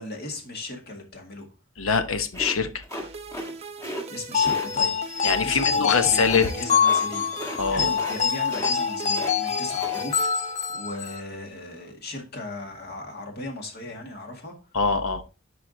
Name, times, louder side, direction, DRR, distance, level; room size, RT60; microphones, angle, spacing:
voice 1, 0.0-1.5 4.1-7.3 7.7-14.6, left 2 dB, 50° left, 1.9 m, -37 dB
voice 2, 1.8-2.8 5.2-6.5 7.6-7.9 14.7-15.2, left 5 dB, 90° left, 0.9 m, -23 dB
sound 1, 2.3-3.5 3.8-4.0 4.4-4.7 6.2-6.5 6.8-7.1 7.3-7.6 7.9-8.2 8.5-9.3 9.7-10.0, equal, 15° left, 1.4 m, -36 dB
sound 2, 2.9-11.2, right 4 dB, 30° right, 0.7 m, -40 dB
sound 3, 4.3-11.2, left 6 dB, 35° left, 0.6 m, -25 dB
10.5 x 4.8 x 2.7 m
head